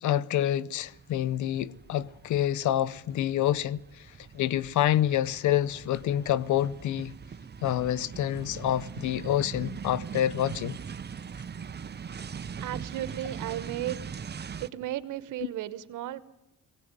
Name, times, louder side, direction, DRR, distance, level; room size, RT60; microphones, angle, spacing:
voice 1, 0.0-7.2 7.6-10.8, left 11 dB, 75° left, 0.8 m, -27 dB
sound 1, 0.8-14.7, right 6 dB, 35° right, 0.9 m, -41 dB
voice 2, 12.6-14.0 14.6-16.2, right 13 dB, 80° right, 1.2 m, -34 dB
19.5 x 18.0 x 9.2 m
cardioid pair, 90°, 30 cm